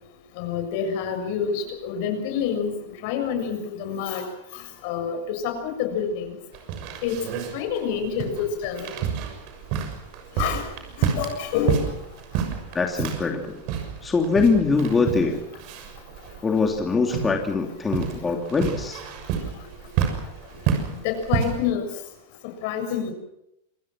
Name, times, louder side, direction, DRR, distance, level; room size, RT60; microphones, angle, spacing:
voice 1, 0.4-6.4 7.0-7.2 7.5-8.9 10.4-10.7 11.0-11.9 17.1-17.2 18.2-18.4 21.0-21.9 22.6-23.1, left 7 dB, 60° left, 8 dB, 6.9 m, -28 dB
sound 1, 6.5-21.7, right 8 dB, 55° right, 6.5 m, -30 dB
voice 2, 12.7-13.6 14.0-15.4 16.4-19.0, left 4 dB, 15° left, 3 dB, 2.8 m, -23 dB
27.0 x 21.0 x 6.1 m, 0.80 s
supercardioid pair, 125°, 0 cm